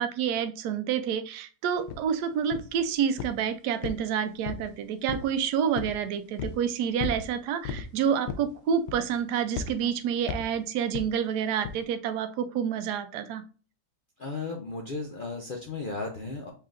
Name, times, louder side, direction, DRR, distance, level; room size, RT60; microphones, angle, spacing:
voice 1, 0.0-13.4, right 8 dB, 80° right, 9 dB, 1.1 m, -28 dB
sound 1, 1.9-2.0 2.5-2.8 3.2-3.5 3.8-4.7 5.1-5.4 5.8-6.0 6.4-6.6 7.0-7.3 7.6-7.9 8.3-8.5 8.9-9.2 9.6-9.8 10.3-10.5 10.9-11.1 11.6-11.8, left 6 dB, 80° left, 1.2 m, -34 dB
voice 2, 14.2-16.5, left 3 dB, 60° left, 1 dB, 0.5 m, -35 dB
5.6 x 3.7 x 2.5 m, 0.37 s
omnidirectional pair, 1.8 m